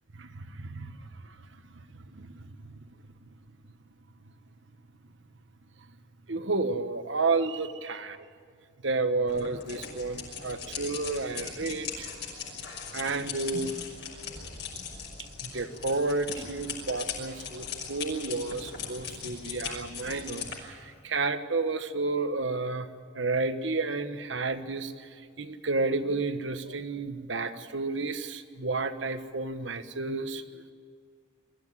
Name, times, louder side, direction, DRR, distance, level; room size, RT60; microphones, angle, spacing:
voice 1, 0.2-1.0 2.1-2.4 6.3-8.2 8.8-12.1 12.9-13.7 15.4-22.9 23.1-24.9 25.4-30.4, right 3 dB, 70° right, 10 dB, 1.3 m, -31 dB
sound 1, 9.3-20.6, left 6 dB, 60° left, 5.9 m, -39 dB
23.5 x 14.5 x 9.7 m, 2.3 s
head